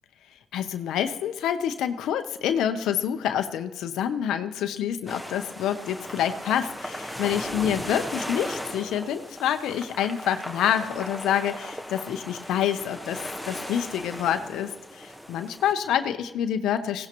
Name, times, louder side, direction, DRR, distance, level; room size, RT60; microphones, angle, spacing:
voice 1, 0.5-17.1, left 9 dB, 85° left, 9 dB, 0.7 m, -27 dB
sound 1, 5.1-15.7, equal, 5° right, 1.2 m, -37 dB
22.0 x 16.5 x 3.0 m, 1.1 s
cardioid pair, 90°, 0 cm